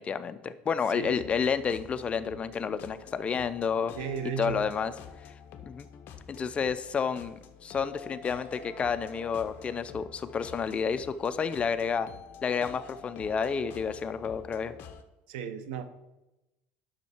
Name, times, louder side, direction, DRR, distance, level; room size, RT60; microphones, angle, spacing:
voice 1, 0.0-3.9 4.4-4.9 5.6-5.9 6.3-12.1 12.4-14.7, left 6 dB, 25° left, 12 dB, 0.5 m, -30 dB
voice 2, 0.9-1.3 4.0-4.7 15.3-15.8, right 7 dB, 85° right, 10 dB, 0.9 m, -35 dB
sound 1, 1.0-15.0, left 7 dB, 50° left, 0.8 m, -48 dB
10.0 x 6.4 x 4.4 m, 0.99 s
supercardioid pair, 130°, 5 cm